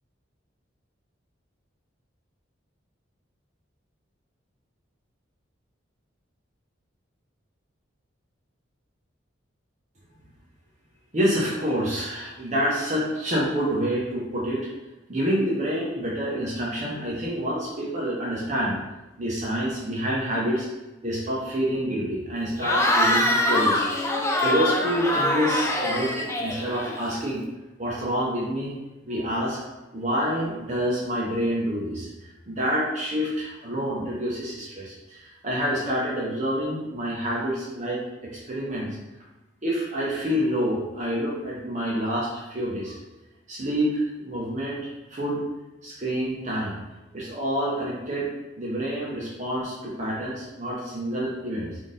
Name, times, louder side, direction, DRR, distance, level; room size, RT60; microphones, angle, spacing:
voice 1, 11.1-14.7 15.1-18.8 19.2-20.7 21.0-27.4 27.8-28.7 29.1-29.6 29.9-38.9 39.6-43.0 43.5-45.4 45.8-46.8 47.1-48.3 48.6-51.8, equal, 35° right, -5 dB, 0.6 m, -27 dB
Cheering / Crowd, 22.6-27.2, left 1 dB, 15° left, 0.3 m, -24 dB
3.6 x 2.6 x 3.8 m, 1.1 s
head